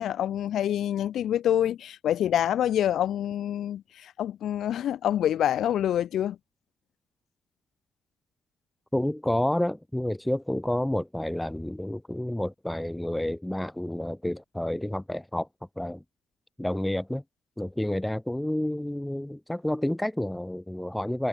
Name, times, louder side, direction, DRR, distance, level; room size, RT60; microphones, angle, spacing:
voice 1, 0.0-6.4, left 11 dB, 70° left, 0.5 m, -26 dB
voice 2, 8.9-15.5 15.8-16.0 16.6-17.2 17.6-21.3, left 1 dB, 5° left, 0.8 m, -29 dB
wide cardioid pair, 165°, 0 cm